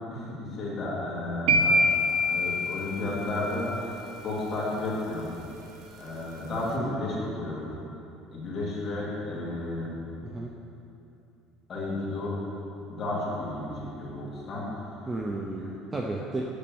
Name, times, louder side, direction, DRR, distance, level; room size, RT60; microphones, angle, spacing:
voice 1, 0.1-1.8 2.3-5.3 6.0-7.7 8.3-10.0 11.7-12.4 12.9-15.1 15.6-15.7, left 2 dB, 25° left, -7 dB, 2.6 m, -33 dB
sound 1, 1.5-3.6, left 1 dB, 70° right, 1.0 m, -25 dB
voice 2, 15.1-16.4, right 2 dB, 15° right, 0 dB, 0.5 m, -33 dB
8.6 x 6.6 x 7.0 m, 2.7 s
cardioid pair, 180°, 0 cm